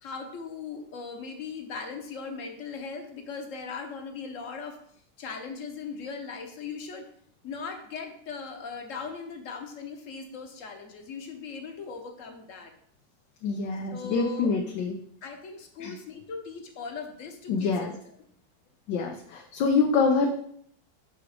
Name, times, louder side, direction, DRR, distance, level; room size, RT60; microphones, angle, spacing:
voice 1, 0.0-4.8 5.2-7.1 7.4-12.7 13.9-14.5 15.2-17.9 18.2-18.3, left 5 dB, 50° left, 4 dB, 1.1 m, -39 dB
voice 2, 13.4-15.0 15.8-15.9 17.5-17.9 18.9-20.3, left 4 dB, 90° left, 2 dB, 1.4 m, -25 dB
7.1 x 3.5 x 4.9 m, 0.65 s
omnidirectional pair, 1.9 m